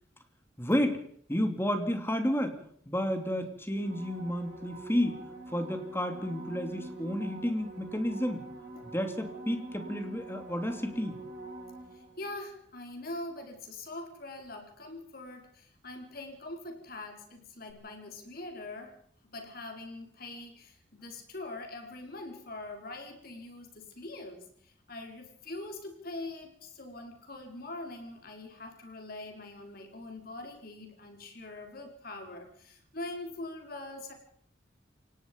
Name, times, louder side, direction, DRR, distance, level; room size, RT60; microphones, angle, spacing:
voice 1, 0.6-1.0 1.3-2.6 2.9-5.2 5.5-8.4 8.8-11.2, equal, 15° left, 7 dB, 2.6 m, -31 dB
sound 1, 3.7-12.4 17.7-17.8, right 2 dB, 65° right, 6.3 m, -45 dB
voice 2, 11.9-19.0 19.2-34.1, left 2 dB, 55° left, 4 dB, 4.5 m, -43 dB
28.0 x 17.5 x 5.3 m, 0.63 s
head